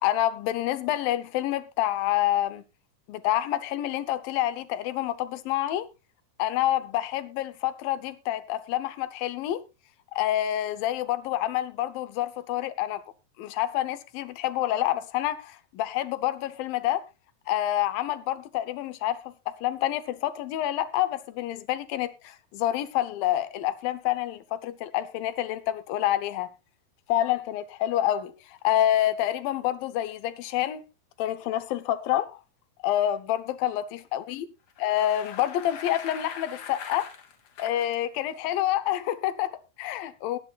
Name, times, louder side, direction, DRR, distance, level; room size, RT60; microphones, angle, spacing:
voice 1, 0.0-2.6 3.1-5.9 6.4-9.6 10.1-13.0 13.4-17.1 17.5-26.5 27.1-30.8 31.2-32.4 32.8-34.5 34.8-37.1 37.6-40.4, left 13 dB, 75° left, 2.3 m, -28 dB
Bicycle, 34.7-38.0, left 7 dB, 50° left, 2.1 m, -42 dB
21.0 x 9.5 x 2.4 m
omnidirectional pair, 4.6 m